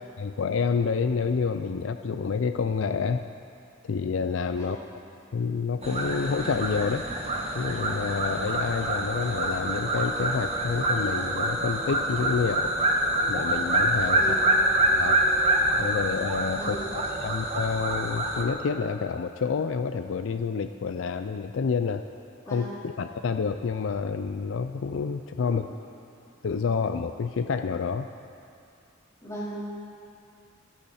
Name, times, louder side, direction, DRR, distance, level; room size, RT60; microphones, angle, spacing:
voice 1, 0.2-3.3 3.8-4.8 5.3-7.1 7.5-12.7 13.3-14.4 15.0-15.2 15.8-22.0 22.5-25.6 26.4-28.1, left 5 dB, 65° left, 9 dB, 0.4 m, -28 dB
sound 1, 5.8-18.4, right 1 dB, 30° right, 1.4 m, -26 dB
voice 2, 14.1-14.5 16.6-16.8 22.5-22.7 25.4-25.5 29.2-29.8, right 1 dB, 15° left, -8 dB, 3.9 m, -36 dB
26.0 x 8.7 x 4.2 m, 2.5 s
head